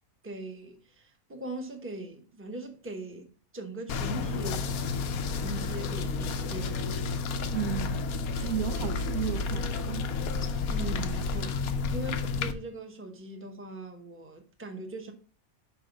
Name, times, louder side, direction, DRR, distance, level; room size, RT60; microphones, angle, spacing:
voice 1, 0.2-7.0 10.7-15.1, right 2 dB, 10° right, 0.9 m, -41 dB
sound 1, 3.9-12.5, left 4 dB, 80° left, 1.2 m, -31 dB
voice 2, 7.5-8.0 8.4-10.1, right 10 dB, 80° right, 1.2 m, -34 dB
5.9 x 4.9 x 5.0 m
omnidirectional pair, 1.5 m